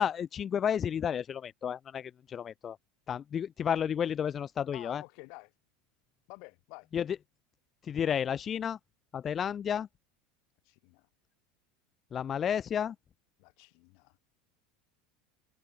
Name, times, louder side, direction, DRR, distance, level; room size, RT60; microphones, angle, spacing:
voice 1, 0.0-2.8 3.1-5.0 6.9-7.0 7.8-8.8 9.1-9.9 12.1-12.9, left 8 dB, 25° left, 0.4 m, -31 dB
voice 2, 4.7-5.5 6.3-6.9 10.6-11.1 13.4-14.2, left 35 dB, 55° left, 6.7 m, -50 dB
supercardioid pair, 160°, 0 cm